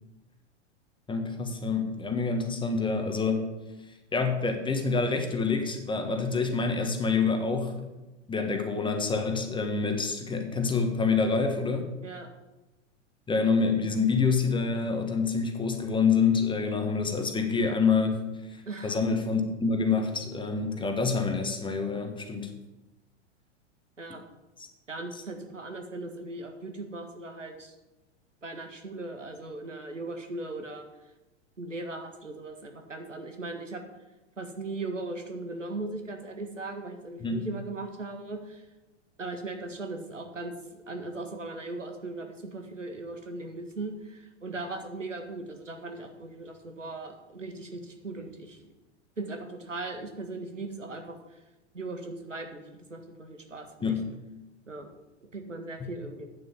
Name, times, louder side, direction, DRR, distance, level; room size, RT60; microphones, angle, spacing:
voice 1, 1.1-3.5 4.1-7.9 8.3-11.9 13.3-22.5 24.6-24.7 37.2-37.5 53.8-54.1, left 4 dB, 15° left, 5 dB, 1.6 m, -27 dB
voice 2, 18.7-19.0 24.0-24.2 24.9-27.7 28.4-30.9 31.6-33.8 34.4-38.6 39.2-48.7 49.2-51.4 51.7-52.6 52.9-54.0 54.7-54.9 55.3-56.3, right 2 dB, 90° right, 5 dB, 1.8 m, -38 dB
9.1 x 7.4 x 7.3 m, 1.0 s
figure-of-eight pair, 95°, 36 cm